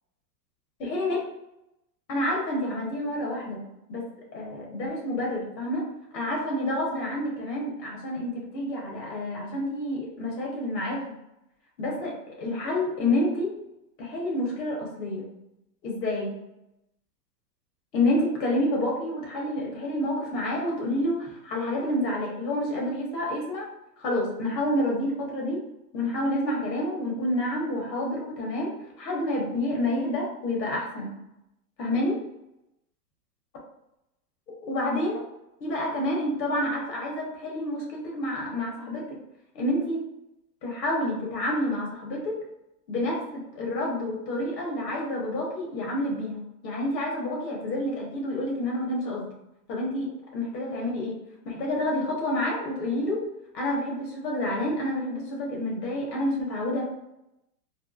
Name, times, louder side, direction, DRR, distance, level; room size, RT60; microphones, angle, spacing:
voice 1, 0.8-1.2 2.1-3.6 3.9-4.0 4.3-5.8 6.1-11.2 11.8-13.5 14.0-15.3 15.8-16.3 17.9-23.7 24.0-25.6 25.9-28.7 29.0-31.1 31.8-32.2 34.6-35.2 35.6-39.2 39.5-40.0 40.6-42.4 42.9-49.3 49.7-50.1 50.3-51.2 51.4-53.2 53.5-56.8, left 1 dB, 75° left, -2 dB, 1.4 m, -28 dB
3.5 x 2.4 x 2.4 m, 0.87 s
hypercardioid pair, 125°, 50 cm